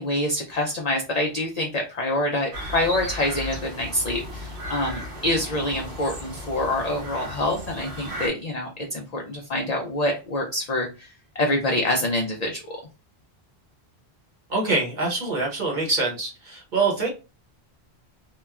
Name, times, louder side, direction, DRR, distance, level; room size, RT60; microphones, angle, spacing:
voice 1, 0.0-11.1 11.4-12.6, left 1 dB, 55° left, 1 dB, 0.5 m, -26 dB
sound 1, 2.5-8.3, equal, 90° right, 1.2 m, -35 dB
voice 2, 14.5-17.1, right 3 dB, 50° right, -1 dB, 1.0 m, -25 dB
3.0 x 2.1 x 2.3 m, 0.30 s
omnidirectional pair, 1.1 m